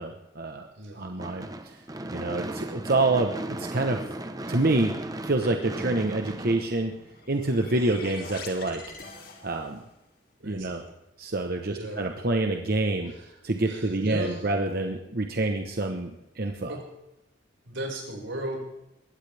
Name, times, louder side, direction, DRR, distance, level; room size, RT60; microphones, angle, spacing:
voice 1, 0.0-0.7 0.9-1.8 2.1-4.0 4.5-4.9 5.3-6.9 7.3-8.8 9.4-9.8 10.4-10.9 11.2-13.1 13.4-16.8, right 2 dB, 50° right, 4 dB, 1.1 m, -27 dB
voice 2, 0.8-1.1 10.4-10.9 11.7-12.1 13.1-13.3 13.7-14.4 16.6-16.8 17.6-18.6, right 1 dB, 85° right, -1 dB, 5.6 m, -36 dB
Gunshot gunfire / Fireworks, 1.2-7.5, right 1 dB, 20° right, 1.0 m, -36 dB
sound 1, 6.9-9.9, left 4 dB, 50° left, 2.7 m, -44 dB
21.5 x 16.5 x 3.5 m, 0.92 s
head